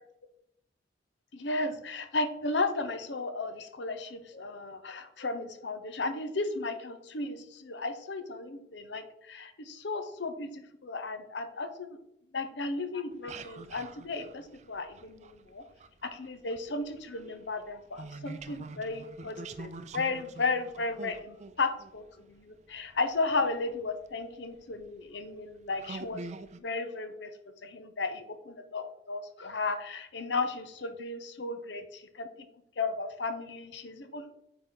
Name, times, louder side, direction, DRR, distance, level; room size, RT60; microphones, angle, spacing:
voice 1, 1.3-11.9 12.3-15.6 16.0-26.2 26.6-27.3 27.6-32.3 32.8-34.3, left 3 dB, 70° left, 8 dB, 0.8 m, -34 dB
sound 1, 13.1-15.9 16.2-23.0 23.9-24.0 24.6-24.9 25.4-25.5 25.8-26.6, right 3 dB, 40° right, 0.4 m, -45 dB
9.0 x 4.0 x 3.8 m, 0.80 s
head